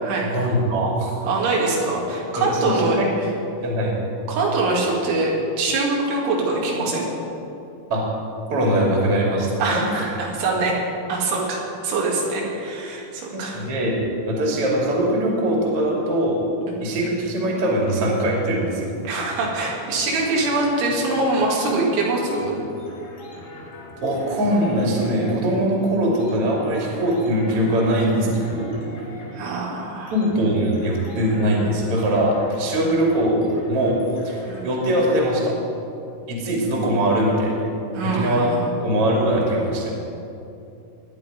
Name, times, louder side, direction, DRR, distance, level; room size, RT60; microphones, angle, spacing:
voice 1, 0.2-1.1 1.6-1.7 2.3-3.1 3.6-4.2 7.9-8.1 8.5-10.1 13.3-16.4 16.8-18.9 24.0-28.7 30.1-34.0 34.2-35.5 36.3-37.6 38.0-38.5 38.8-39.9, right 1 dB, 35° right, -2 dB, 3.2 m, -22 dB
voice 2, 1.2-3.0 4.3-7.1 9.6-10.8 11.1-13.7 16.7-16.8 19.0-22.6 29.3-30.1 32.8-32.9 34.5-34.6 37.9-38.7, right 3 dB, 85° right, -3 dB, 4.7 m, -23 dB
sound 1, 19.2-35.0, left 1 dB, 50° left, 4.1 m, -41 dB
19.5 x 11.0 x 5.1 m, 2.7 s
omnidirectional pair, 5.3 m